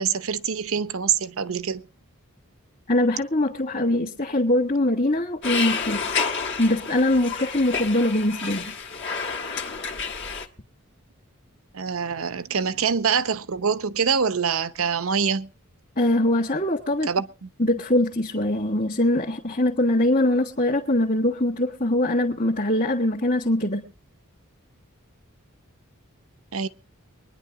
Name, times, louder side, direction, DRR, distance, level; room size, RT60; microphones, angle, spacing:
voice 1, 0.0-1.8 11.7-15.5 17.0-17.5 26.5-26.7, right 6 dB, 75° right, 0.8 m, -25 dB
voice 2, 2.9-6.2 6.6-8.7 16.0-17.1 17.6-23.8, left 1 dB, 40° left, 2.0 m, -22 dB
sound 1, 5.4-10.5, left 5 dB, 55° left, 1.4 m, -29 dB
24.0 x 10.0 x 3.7 m
head